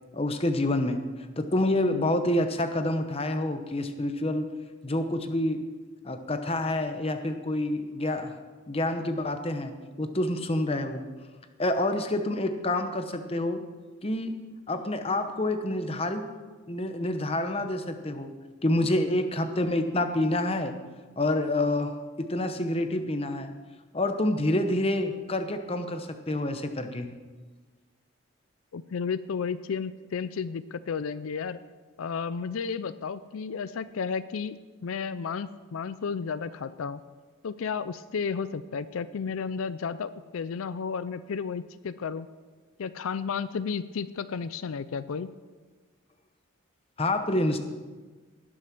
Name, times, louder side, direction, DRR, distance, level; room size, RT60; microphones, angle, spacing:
voice 1, 0.1-1.0 1.4-4.5 4.8-5.6 6.0-8.3 8.7-11.1 11.6-13.6 14.0-14.4 14.7-16.2 16.7-18.3 18.6-20.7 21.2-23.5 23.9-27.1 47.0-47.6, left 1 dB, 30° left, 7 dB, 0.8 m, -27 dB
voice 2, 28.7-31.6 32.0-37.0 37.4-42.3 42.8-45.3, left 6 dB, 80° left, 14 dB, 0.4 m, -33 dB
19.0 x 6.4 x 6.0 m, 1.4 s
head